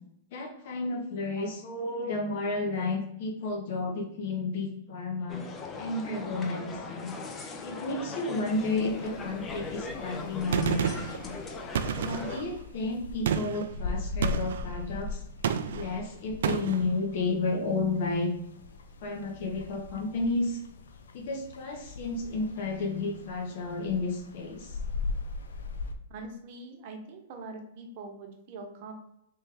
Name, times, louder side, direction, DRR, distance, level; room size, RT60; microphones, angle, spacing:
voice 1, 0.3-5.4 5.8-7.2 7.6-11.4 12.0-15.2 15.7-18.3 19.0-20.6 21.1-24.8, left 3 dB, 60° left, 1 dB, 0.8 m, -32 dB
sound 1, 5.3-12.4, left 4 dB, 20° left, 0.5 m, -40 dB
sound 2, 8.5-25.9, left 3 dB, 80° left, 0.5 m, -40 dB
Gunshot gunfire, 10.5-11.2 11.7-12.5 13.2-13.7 14.2-14.7 15.4-15.9 16.4-16.8, right 8 dB, 70° right, 0.3 m, -29 dB
voice 2, 26.1-28.9, right 3 dB, 50° right, 3 dB, 0.9 m, -43 dB
3.1 x 3.0 x 3.4 m, 0.80 s
hypercardioid pair, 120°, 0 cm